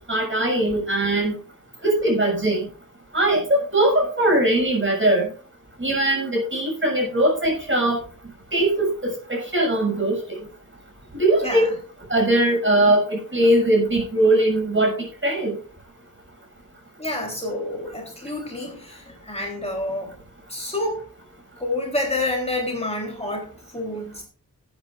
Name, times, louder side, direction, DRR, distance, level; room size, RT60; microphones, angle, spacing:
voice 1, 0.1-1.4 1.8-2.7 3.1-5.3 5.8-8.0 8.5-10.2 11.1-11.7 12.1-14.9 15.2-15.5, right 1 dB, 35° right, 0 dB, 6.6 m, -20 dB
voice 2, 17.0-20.1 20.5-21.1 21.6-24.2, left 2 dB, 20° left, -1 dB, 3.5 m, -28 dB
19.5 x 9.1 x 2.5 m, 0.40 s
wide cardioid pair, 100°, 34 cm